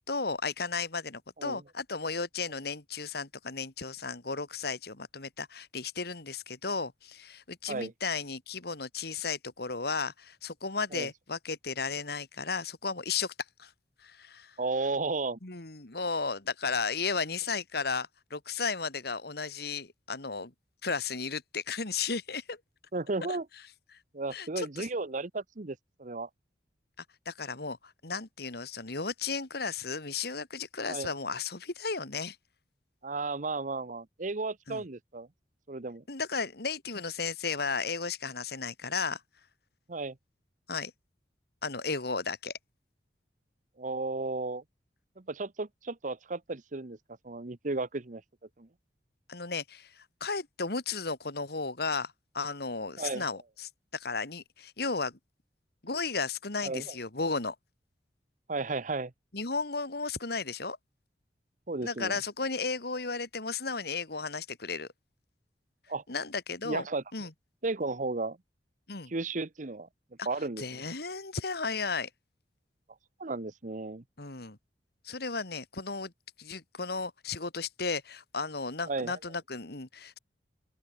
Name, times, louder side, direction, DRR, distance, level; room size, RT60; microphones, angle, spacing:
voice 1, 0.1-13.3 13.6-13.7 14.0-14.5 15.4-20.5 20.8-22.6 23.3-23.4 24.3-24.9 27.3-32.4 34.7-34.8 36.1-39.2 40.7-40.9 41.6-42.5 49.3-55.2 55.8-57.6 59.3-60.8 61.8-64.9 66.1-66.9 67.1-67.3 68.9-69.1 70.2-70.3 70.6-72.1 74.2-74.6 75.0-76.1 76.4-80.2, left 4 dB, 65° left, 2.3 m, -34 dB
voice 2, 14.6-15.4 22.9-23.5 24.1-26.3 30.9-31.1 33.0-35.3 35.7-36.0 39.9-40.2 43.8-44.6 45.2-47.0 47.2-48.2 48.6-48.7 53.0-53.2 56.6-56.9 58.5-59.1 61.7-62.2 65.9-66.0 66.6-67.0 67.6-68.4 69.1-69.9 70.2-70.8 73.2-74.0 78.9-79.2, right 3 dB, 45° right, 1.0 m, -34 dB
open air
head